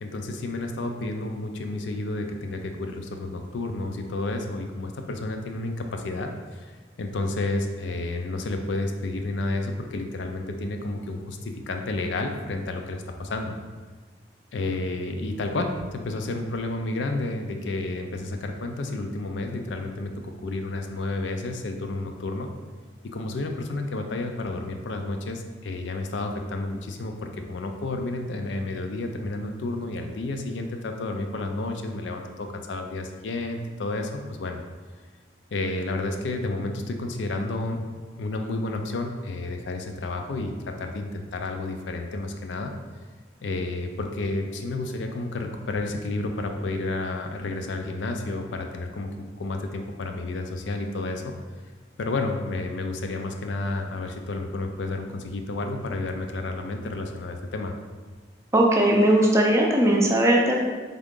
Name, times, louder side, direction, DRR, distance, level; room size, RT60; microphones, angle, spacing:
voice 1, 0.0-6.7 7.0-13.6 14.5-22.5 23.1-34.6 35.5-37.8 38.2-42.7 43.4-51.3 52.0-57.7, left 2 dB, 80° left, 4 dB, 0.5 m, -31 dB
voice 2, 58.5-60.6, right 1 dB, 15° right, -1 dB, 0.5 m, -19 dB
3.6 x 3.6 x 3.7 m, 1.4 s
head